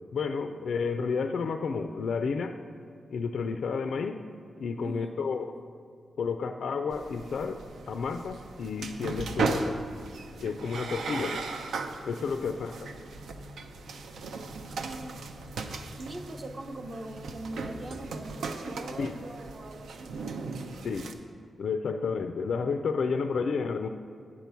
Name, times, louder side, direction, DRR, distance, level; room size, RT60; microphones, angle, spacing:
voice 1, 0.1-2.6 3.1-4.2 4.6-5.5 6.2-9.8 10.4-11.4 12.0-12.7 19.0-19.1 20.8-21.1 21.6-23.9, left 5 dB, 70° left, 8 dB, 0.3 m, -31 dB
voice 2, 4.8-5.2 12.4-12.8 14.8-15.2 16.0-20.1, right 2 dB, 35° right, 4 dB, 0.7 m, -42 dB
sound 1, 6.9-21.1, right 4 dB, 85° right, 0.5 m, -37 dB
sound 2, 10.5-19.8, left 2 dB, 20° left, 0.5 m, -51 dB
8.7 x 4.5 x 6.9 m, 2.4 s
wide cardioid pair, 120°, 0 cm